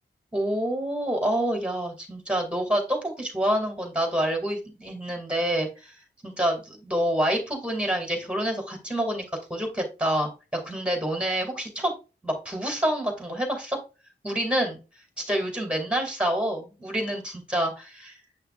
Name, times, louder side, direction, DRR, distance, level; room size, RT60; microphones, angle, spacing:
voice 1, 0.3-5.9 6.2-9.2 9.5-11.9 12.2-13.8 14.2-14.8 15.2-18.2, right 1 dB, 5° right, 3 dB, 2.3 m, -27 dB
7.6 x 5.7 x 2.4 m, 0.31 s
wide cardioid pair, 120°, 18 cm